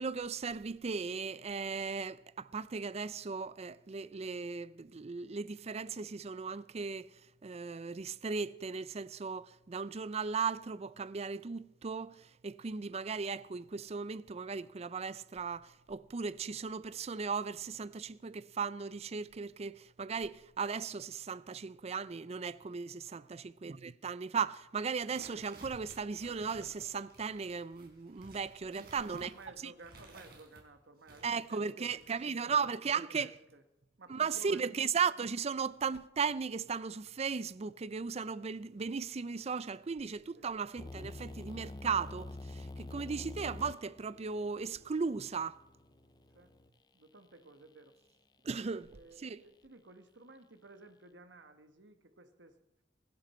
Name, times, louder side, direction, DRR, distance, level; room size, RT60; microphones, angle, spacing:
voice 1, 0.0-29.3 29.6-29.7 31.2-33.3 34.1-45.6 48.4-48.9 49.2-49.4, right 5 dB, 35° right, 0.4 m, -37 dB
voice 2, 23.1-23.5 28.7-33.6 34.0-34.8 40.4-40.5 46.3-46.5 46.9-48.0 48.7-52.6, right 3 dB, 80° right, 1.4 m, -55 dB
sound 1, 25.0-30.6 31.0-32.2, right 2 dB, 60° right, 4.6 m, -56 dB
sound 2, 40.8-46.7, left 2 dB, 25° left, 0.5 m, -47 dB
25.0 x 11.5 x 4.4 m
head